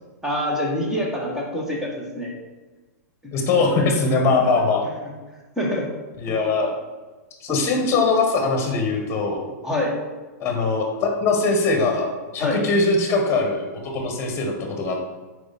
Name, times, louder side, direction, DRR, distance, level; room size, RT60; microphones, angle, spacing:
voice 1, 0.2-2.3 5.6-5.9 6.3-6.4 9.6-9.9 12.4-12.6, left 1 dB, 5° right, -3 dB, 1.3 m, -25 dB
voice 2, 3.3-4.8 6.2-6.7 7.4-9.5 10.4-13.7 13.9-15.1, left 3 dB, 30° left, 2 dB, 1.4 m, -21 dB
4.8 x 4.6 x 4.2 m, 1.2 s
hypercardioid pair, 135°, 9 cm